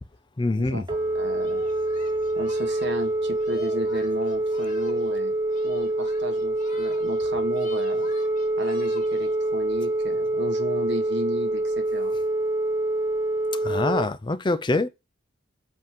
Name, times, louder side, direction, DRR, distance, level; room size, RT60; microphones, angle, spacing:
voice 1, 0.4-0.8 13.6-14.9, left 2 dB, 25° left, 0.4 m, -24 dB
Telephone, 0.8-14.0, right 2 dB, 20° right, 0.7 m, -26 dB
sound 1, 0.9-6.0, right 2 dB, 40° right, 3.6 m, -54 dB
voice 2, 1.1-1.7 2.3-5.3 5.6-8.1 8.6-12.1, equal, 60° right, 1.6 m, -34 dB
Singing, 1.4-5.2 5.5-7.2 7.5-9.4, left 3 dB, 40° left, 2.0 m, -49 dB
7.5 x 3.7 x 6.0 m
head